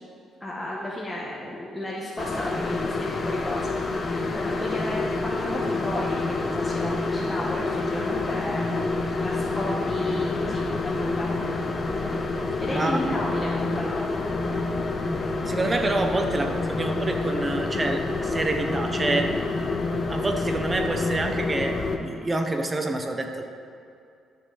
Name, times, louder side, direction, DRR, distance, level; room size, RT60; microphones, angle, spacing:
voice 1, 0.4-3.7 4.0-11.3 12.6-14.3, left 1 dB, 10° left, -5 dB, 1.4 m, -33 dB
sound 1, 2.2-22.0, left 3 dB, 35° left, 0.9 m, -28 dB
voice 2, 12.7-13.1 15.4-19.3 20.1-23.5, right 2 dB, 25° right, 5 dB, 1.0 m, -27 dB
12.0 x 6.5 x 4.1 m, 2.4 s
cardioid pair, 80°, 0 cm